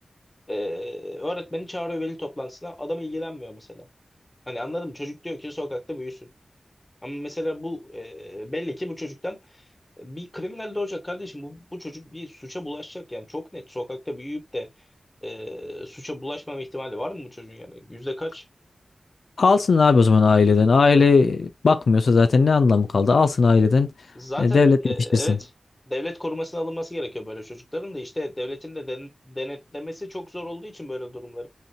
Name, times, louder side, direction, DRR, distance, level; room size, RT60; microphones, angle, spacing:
voice 1, 0.5-3.9 4.5-6.3 7.0-9.6 10.0-14.7 15.2-18.4 24.1-25.5 25.9-31.5, left 1 dB, 20° left, 1.2 m, -33 dB
voice 2, 19.4-23.9 24.4-24.8 25.1-25.4, left 4 dB, 85° left, 0.3 m, -17 dB
5.6 x 2.8 x 2.2 m
wide cardioid pair, 65°, 0 cm